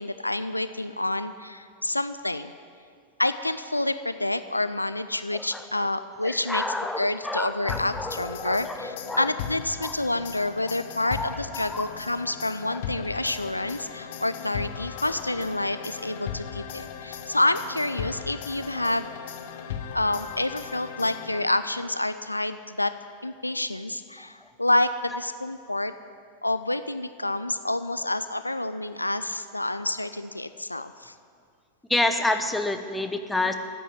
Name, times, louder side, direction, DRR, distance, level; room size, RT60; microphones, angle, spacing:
voice 1, 0.0-2.5 3.2-6.6 7.0-19.1 19.9-22.9 23.2-25.9 26.4-31.1, left 2 dB, 85° left, 12 dB, 0.4 m, -28 dB
voice 2, 5.3-5.9 6.2-9.3 9.8-9.9 10.6-10.7 11.0-11.9 12.7-12.8 18.8-18.9 25.1-25.2 31.9-33.5, left 2 dB, 5° left, 7 dB, 1.1 m, -29 dB
sound 1, 7.7-21.8, left 8 dB, 55° left, 1.0 m, -38 dB
13.5 x 8.9 x 9.5 m, 2.3 s
figure-of-eight pair, 90°, 0 cm